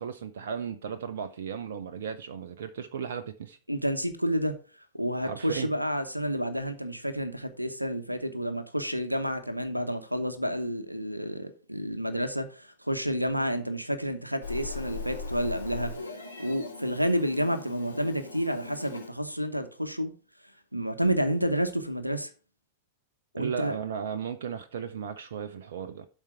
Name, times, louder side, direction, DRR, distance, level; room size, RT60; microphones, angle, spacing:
voice 1, 0.0-3.6 5.2-5.7 23.4-26.1, right 7 dB, 60° right, 0.7 m, -35 dB
voice 2, 3.7-4.5 4.9-16.1 16.4-20.1 20.7-22.3 23.3-23.7, equal, 90° right, 0.9 m, -30 dB
Meow, 14.4-19.1, left 4 dB, 80° left, 2.3 m, -39 dB
12.0 x 4.4 x 4.9 m
figure-of-eight pair, 90°, 0 cm